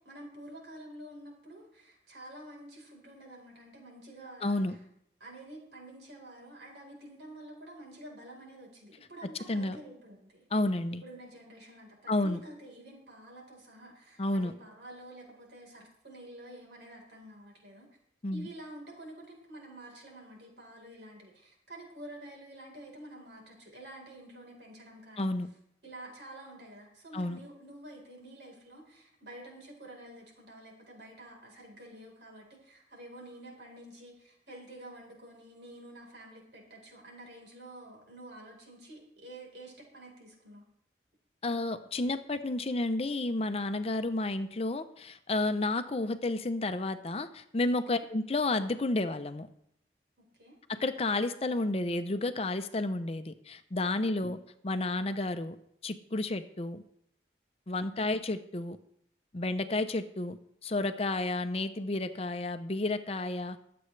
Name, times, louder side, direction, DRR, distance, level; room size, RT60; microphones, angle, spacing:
voice 1, 0.0-4.6 5.2-10.5 11.0-17.9 18.3-25.3 25.8-40.6 47.9-48.0 50.4-50.6 58.0-58.2, right 1 dB, 80° right, 0 dB, 4.2 m, -49 dB
voice 2, 4.4-4.8 9.5-9.8 10.5-11.0 12.1-12.4 14.2-14.5 18.2-18.5 25.2-25.5 27.1-27.4 41.4-49.5 50.7-55.6 55.8-56.8 57.7-58.8 59.3-63.6, left 2 dB, 35° left, 10 dB, 0.6 m, -31 dB
23.0 x 7.8 x 3.3 m, 0.74 s
head